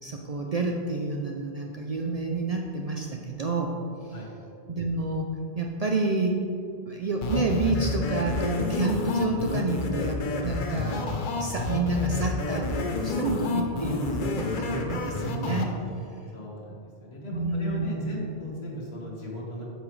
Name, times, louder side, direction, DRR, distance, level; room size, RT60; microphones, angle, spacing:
voice 1, 0.0-3.7 4.0-4.2 4.7-5.3 5.5-6.4 6.9-11.1 11.4-15.7 17.3-18.3, right 3 dB, 50° right, 1 dB, 0.5 m, -29 dB
sound 1, 7.2-15.6, left 3 dB, 55° left, 0.8 m, -29 dB
voice 2, 16.3-19.6, left 1 dB, 70° left, -3 dB, 1.7 m, -38 dB
8.2 x 6.0 x 3.2 m, 2.6 s
omnidirectional pair, 1.1 m